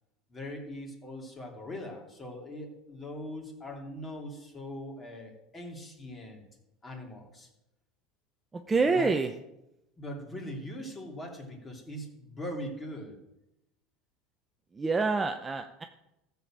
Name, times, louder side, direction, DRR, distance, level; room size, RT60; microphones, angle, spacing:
voice 1, 0.3-6.4 6.8-7.5 8.9-9.1 10.0-13.2, left 1 dB, 15° left, 1 dB, 2.9 m, -41 dB
voice 2, 8.5-9.3 14.7-15.8, right 4 dB, 15° right, 6 dB, 0.7 m, -27 dB
14.5 x 7.0 x 7.4 m, 0.89 s
supercardioid pair, 145°, 0 cm